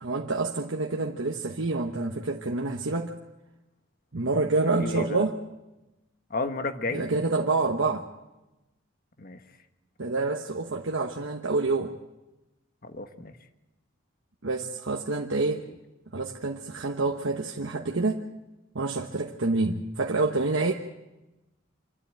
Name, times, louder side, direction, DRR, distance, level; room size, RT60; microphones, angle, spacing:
voice 1, 0.0-3.1 4.1-5.4 6.9-8.1 10.0-11.9 14.4-15.6 16.1-18.3 18.7-20.7, right 3 dB, 70° right, 1 dB, 1.2 m, -27 dB
voice 2, 4.8-5.2 6.3-7.1 9.2-9.4 12.8-13.3, left 3 dB, 45° left, 7 dB, 1.4 m, -32 dB
26.5 x 12.5 x 8.9 m, 1.0 s
head